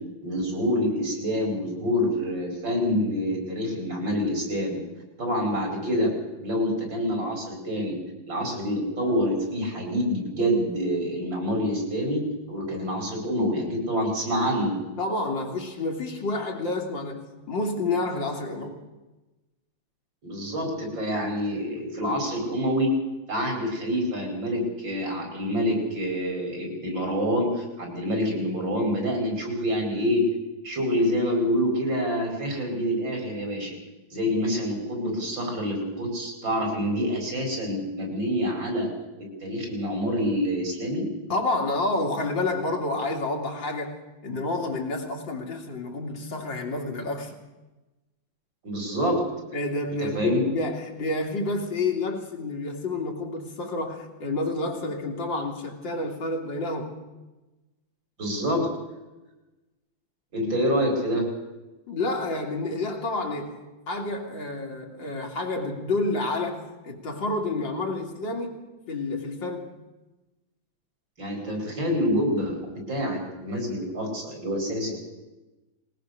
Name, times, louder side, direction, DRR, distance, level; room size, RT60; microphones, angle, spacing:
voice 1, 0.2-4.8 5.2-6.1 6.4-8.0 8.3-12.2 12.5-14.8 20.2-22.9 23.3-30.3 30.6-33.8 34.1-38.9 39.2-41.1 48.6-49.3 50.0-50.4 58.2-58.7 60.3-61.3 71.2-75.0, equal, 75° right, 5.6 m, -27 dB
voice 2, 15.0-18.8 41.3-47.4 49.5-57.0 61.9-63.6 63.9-68.6 68.9-69.7, left 2 dB, 75° left, 3.5 m, -29 dB
20.5 x 19.5 x 6.7 m
omnidirectional pair, 2.0 m